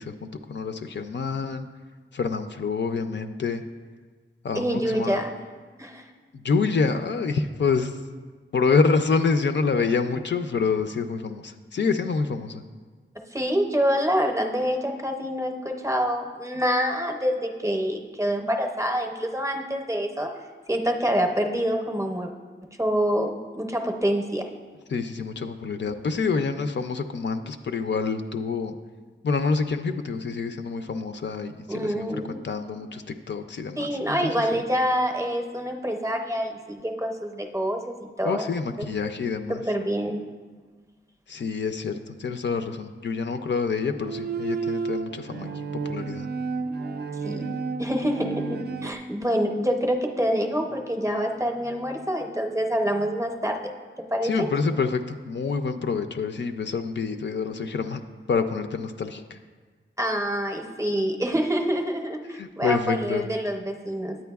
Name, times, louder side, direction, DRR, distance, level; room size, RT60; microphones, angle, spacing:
voice 1, 0.0-1.7 2.1-3.6 4.4-5.2 6.4-8.0 8.5-12.6 24.9-28.8 29.2-34.6 38.2-39.6 41.3-46.3 54.2-58.0 58.3-59.4 62.4-63.3, left 4 dB, 60° left, 8 dB, 0.4 m, -27 dB
voice 2, 4.5-5.3 5.8-6.0 13.3-20.3 20.7-22.3 22.8-24.5 31.7-32.4 33.8-38.5 39.5-40.3 47.2-47.5 47.8-53.7 54.0-54.5 60.0-64.2, equal, 15° right, 3 dB, 0.6 m, -26 dB
Bowed string instrument, 44.0-48.9, right 4 dB, 55° right, 0.4 m, -31 dB
9.3 x 8.7 x 2.3 m, 1.4 s
wide cardioid pair, 100°, 20 cm